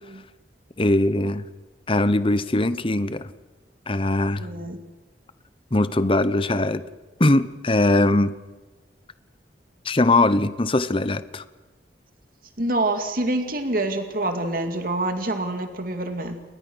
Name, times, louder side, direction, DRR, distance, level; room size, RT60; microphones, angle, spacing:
voice 1, 0.8-1.4 1.9-3.3 3.9-4.5 5.7-6.8 7.2-8.3 9.8-11.4, left 2 dB, 30° left, 13 dB, 1.0 m, -21 dB
voice 2, 4.4-4.9 12.6-16.4, right 2 dB, 55° right, 6 dB, 2.4 m, -26 dB
30.0 x 23.0 x 6.4 m, 1.2 s
head